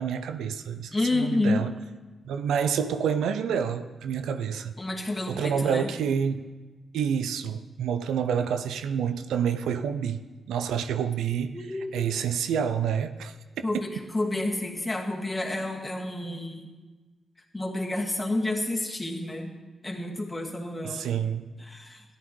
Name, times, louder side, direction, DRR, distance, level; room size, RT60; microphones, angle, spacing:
voice 1, 0.0-1.7 2.2-4.7 5.3-6.5 6.9-10.2 10.5-11.6 11.9-13.3 20.8-21.4, right 7 dB, 80° right, 10 dB, 0.4 m, -28 dB
voice 2, 0.9-1.7 4.8-5.9 11.5-12.1 13.6-16.7 17.5-19.5 19.8-21.1 21.6-22.0, left 2 dB, 20° left, 0 dB, 2.0 m, -29 dB
13.5 x 10.0 x 3.2 m, 1.3 s
hypercardioid pair, 40°, 0 cm